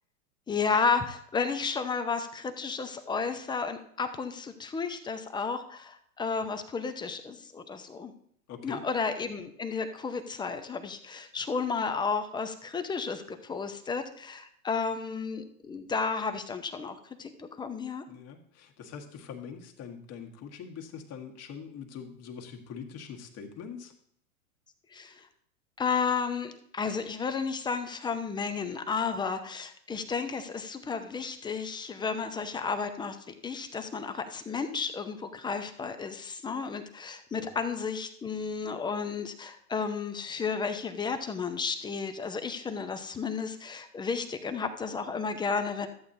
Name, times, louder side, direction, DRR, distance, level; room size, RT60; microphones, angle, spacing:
voice 1, 0.5-8.1 8.6-18.0 24.9-25.3 25.8-45.9, left 5 dB, 10° left, 8 dB, 0.6 m, -32 dB
voice 2, 8.5-8.8 18.1-23.9 37.3-37.6, left 6 dB, 35° left, 3 dB, 1.6 m, -43 dB
13.5 x 8.4 x 2.7 m, 0.66 s
hypercardioid pair, 110°, 45 cm